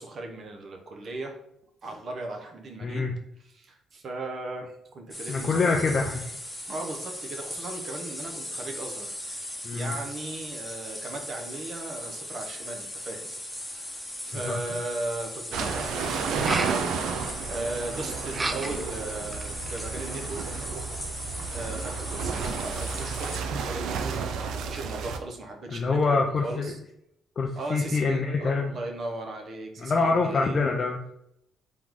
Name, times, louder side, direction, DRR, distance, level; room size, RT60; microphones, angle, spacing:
voice 1, 0.0-1.4 1.8-3.1 3.4-5.8 6.7-13.3 13.6-20.6 21.5-26.8 27.6-30.7, right 2 dB, 55° right, 3 dB, 0.9 m, -37 dB
voice 2, 2.8-3.1 5.3-6.1 9.6-9.9 14.4-14.6 25.7-26.7 27.4-28.8 29.8-31.2, left 4 dB, 45° left, 1 dB, 0.5 m, -25 dB
sound 1, 5.1-23.4, left 1 dB, 10° left, 1.0 m, -38 dB
sound 2, 14.6-14.7 16.3-16.8 18.3-18.9 19.3-19.9, right 2 dB, 25° right, 0.4 m, -32 dB
sound 3, 15.5-25.2, right 5 dB, 80° right, 0.4 m, -32 dB
3.6 x 3.1 x 3.6 m, 0.78 s
cardioid pair, 90°, 0 cm